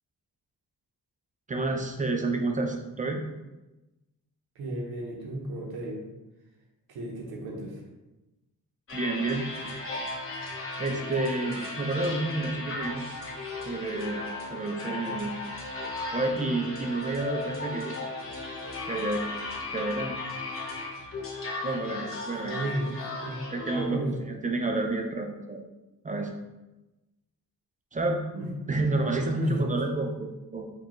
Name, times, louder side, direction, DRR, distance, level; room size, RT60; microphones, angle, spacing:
voice 1, 1.5-3.2 8.9-9.5 10.8-13.2 13.7-14.2 14.5-15.4 16.1-18.0 18.5-18.6 18.9-19.2 19.7-20.1 21.6-22.6 23.5-25.6 26.0-26.3 27.9-28.2 28.7-30.7, right 2 dB, 25° right, 2 dB, 0.3 m, -29 dB
voice 2, 4.6-6.1 6.9-7.8 22.4-23.4 23.7-24.2 28.3-28.5 29.4-29.7, right 1 dB, 85° right, -2 dB, 0.8 m, -34 dB
sound 1, 8.9-23.9, left 2 dB, 35° left, 0.7 m, -36 dB
4.6 x 2.3 x 2.9 m, 1.0 s
wide cardioid pair, 140°, 37 cm